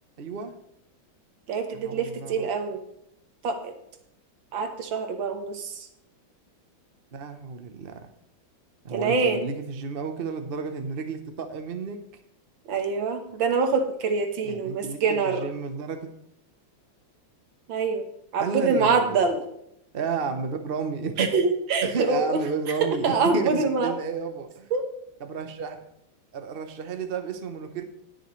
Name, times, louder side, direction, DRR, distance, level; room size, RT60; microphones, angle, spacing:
voice 1, 0.2-0.5 1.7-2.5 7.1-8.1 8.8-12.0 14.4-16.1 18.4-19.2 19.9-21.4 21.8-24.7 25.2-25.8 26.3-27.8, right 5 dB, 45° right, 7 dB, 0.8 m, -32 dB
voice 2, 1.5-2.8 3.4-3.7 4.5-5.9 8.9-9.4 12.7-15.5 17.7-18.0 18.3-19.4 21.2-22.4 22.8-23.9 24.7-24.9, right 4 dB, 70° right, 6 dB, 2.0 m, -25 dB
19.5 x 6.6 x 3.2 m, 0.77 s
omnidirectional pair, 2.2 m